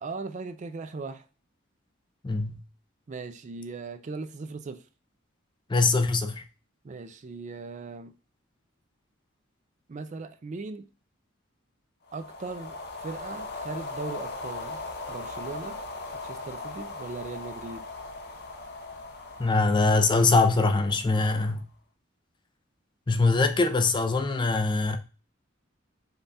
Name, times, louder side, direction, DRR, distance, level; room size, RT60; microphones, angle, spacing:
voice 1, 0.0-1.2 3.1-4.8 6.8-8.1 9.9-10.9 12.1-12.8 13.0-14.8 15.1-15.8 16.2-17.8, right 4 dB, 40° right, 0.4 m, -38 dB
voice 2, 2.2-2.6 5.7-6.4 19.4-21.6 23.1-25.0, left 3 dB, 25° left, 0.4 m, -23 dB
sound 1, 12.1-21.5, left 3 dB, 55° left, 0.7 m, -39 dB
5.3 x 2.4 x 4.1 m
head